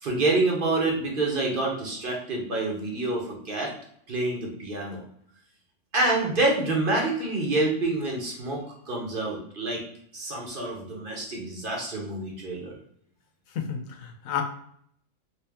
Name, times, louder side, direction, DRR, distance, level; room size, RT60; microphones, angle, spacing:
voice 1, 0.0-3.7 4.1-5.0 5.9-9.8 10.1-12.7, right 2 dB, 45° right, -1 dB, 0.9 m, -27 dB
voice 2, 13.6-14.4, left 8 dB, 80° left, 5 dB, 1.0 m, -31 dB
3.3 x 2.8 x 3.4 m, 0.65 s
omnidirectional pair, 1.4 m